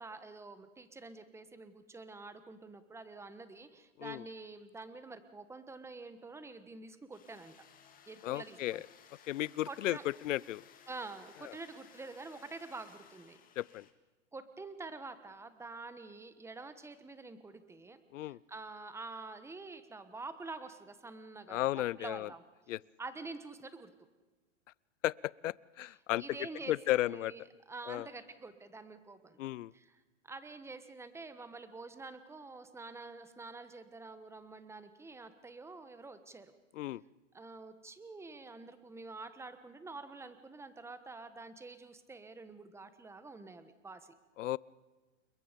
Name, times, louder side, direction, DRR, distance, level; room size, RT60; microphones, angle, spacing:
voice 1, 0.0-7.7 8.1-8.8 9.7-10.0 10.9-13.4 14.3-22.4 23.0-23.9 26.2-27.4 27.7-29.4 29.7-36.5 37.3-44.1, right 3 dB, 5° right, 11 dB, 1.3 m, -47 dB
sound 1, 7.1-13.9, left 8 dB, 20° left, 2.1 m, -60 dB
voice 2, 8.2-8.8 9.3-10.6 11.4-11.5 13.6-13.9 18.1-18.4 21.5-22.3 22.7-22.8 25.0-25.1 25.4-26.2 26.7-27.3 27.9-28.1 29.4-29.7 36.7-37.0 44.4-44.6, left 15 dB, 75° left, 24 dB, 0.6 m, -34 dB
29.5 x 22.0 x 5.2 m, 1.2 s
hypercardioid pair, 130°, 38 cm